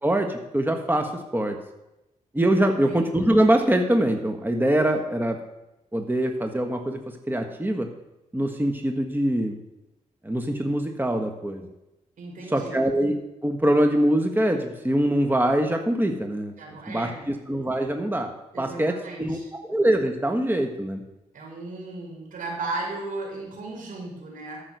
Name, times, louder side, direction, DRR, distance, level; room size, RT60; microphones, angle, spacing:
voice 1, 0.0-1.6 2.3-5.4 5.9-7.9 8.3-9.6 10.2-11.7 12.5-13.2 13.4-16.5 16.9-18.3 18.6-19.4 19.6-21.0, right 1 dB, 15° right, 4 dB, 1.7 m, -23 dB
voice 2, 2.6-3.0 12.2-12.8 16.6-17.3 18.5-19.5 21.3-24.6, right 2 dB, 75° right, -1 dB, 5.1 m, -35 dB
14.0 x 6.1 x 6.3 m, 0.94 s
supercardioid pair, 45°, 14 cm